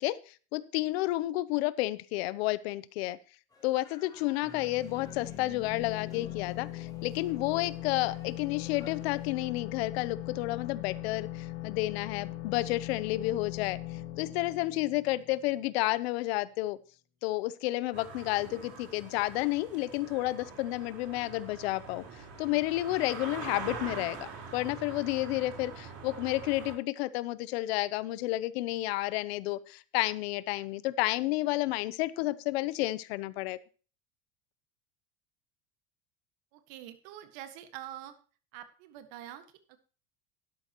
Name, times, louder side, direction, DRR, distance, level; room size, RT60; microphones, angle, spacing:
voice 1, 0.0-3.2 3.6-13.8 14.2-16.8 17.2-33.6, left 18 dB, 75° left, 17 dB, 0.8 m, -31 dB
sound 1, 3.5-9.5, left 4 dB, 10° left, 4.0 m, -57 dB
sound 2, 4.4-15.9, left 14 dB, 45° left, 2.0 m, -40 dB
sound 3, 17.9-26.7, right 5 dB, 50° right, 4.3 m, -44 dB
voice 2, 36.5-38.2 38.5-39.8, right 12 dB, 65° right, 9 dB, 1.8 m, -46 dB
12.5 x 11.0 x 3.0 m, 0.37 s
supercardioid pair, 145°, 31 cm